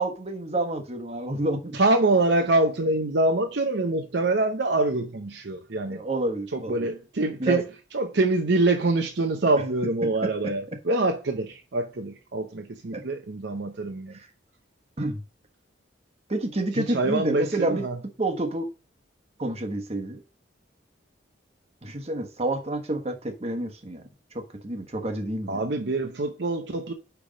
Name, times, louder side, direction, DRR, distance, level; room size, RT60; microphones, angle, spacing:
voice 1, 0.0-1.8 5.9-6.8 7.4-7.6 12.9-13.0 14.1-14.3 15.0-15.2 16.3-17.9 18.2-18.7 19.4-20.2 21.8-24.0 24.3-25.6, right 2 dB, 30° right, 1.2 m, -29 dB
voice 2, 1.7-6.0 6.5-7.6 7.9-14.2 16.7-18.0 25.5-26.9, right 2 dB, 60° right, 0.7 m, -25 dB
8.8 x 3.5 x 5.2 m
head